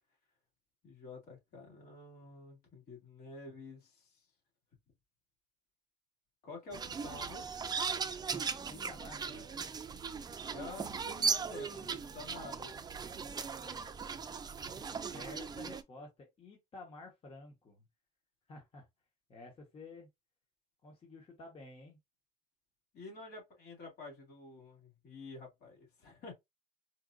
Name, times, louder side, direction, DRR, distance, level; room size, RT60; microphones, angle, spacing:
voice 1, 0.8-4.2 6.4-7.5 10.4-12.8 22.9-26.3, left 3 dB, 65° left, 2.3 m, -49 dB
sound 1, 6.7-15.8, right 5 dB, 25° right, 0.4 m, -38 dB
voice 2, 8.7-9.5 15.1-17.8 18.5-18.9 19.3-20.1 20.8-22.0, left 3 dB, 35° left, 1.2 m, -51 dB
4.4 x 2.5 x 2.6 m
cardioid pair, 110°, 17 cm